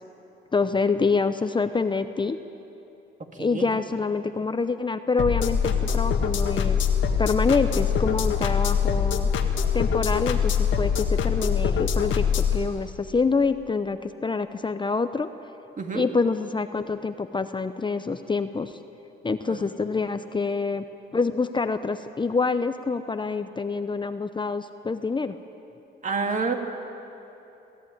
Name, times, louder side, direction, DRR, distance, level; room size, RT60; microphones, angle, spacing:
voice 1, 0.5-2.4 3.3-6.8 7.2-9.3 9.7-15.3 15.9-18.8 19.2-20.8 21.1-25.4, left 4 dB, 25° left, 10 dB, 0.8 m, -26 dB
voice 2, 3.2-3.7 15.8-16.0 19.5-19.7 26.0-26.5, right 4 dB, 40° right, 4 dB, 2.4 m, -29 dB
sound 1, 5.2-12.6, left 7 dB, 75° left, 1.8 m, -23 dB
22.5 x 15.0 x 9.2 m, 2.9 s
cardioid pair, 90°, 20 cm